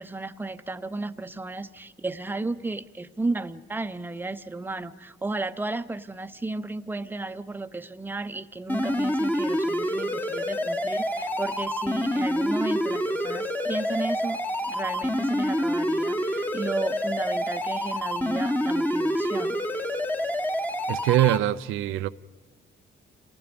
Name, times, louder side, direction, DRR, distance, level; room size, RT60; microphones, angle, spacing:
voice 1, 0.0-19.9, right 2 dB, 10° right, 0.7 m, -34 dB
sound 1, 8.7-21.4, equal, 10° left, 1.1 m, -27 dB
voice 2, 20.9-22.1, right 14 dB, 90° right, 0.5 m, -23 dB
28.0 x 19.5 x 5.2 m
cardioid pair, 90°, 20 cm